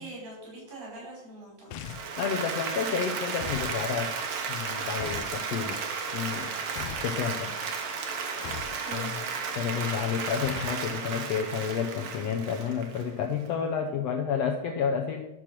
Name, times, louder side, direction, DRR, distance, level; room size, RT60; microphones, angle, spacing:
voice 1, 0.0-1.8 8.7-9.1, right 1 dB, 75° right, -5 dB, 6.5 m, -42 dB
sound 1, 1.7-2.2 3.4-3.7 5.0-5.4 6.8-7.1 8.4-8.8 10.4-10.8, left 9 dB, 85° left, 1.3 m, -39 dB
Applause, 1.7-13.5, right 5 dB, 60° right, 2.0 m, -34 dB
voice 2, 2.2-4.1 4.5-5.8 6.1-6.5 7.0-7.5 8.9-9.1 9.6-15.2, left 7 dB, 70° left, 2 dB, 1.8 m, -30 dB
12.0 x 6.6 x 6.1 m, 0.91 s
omnidirectional pair, 3.5 m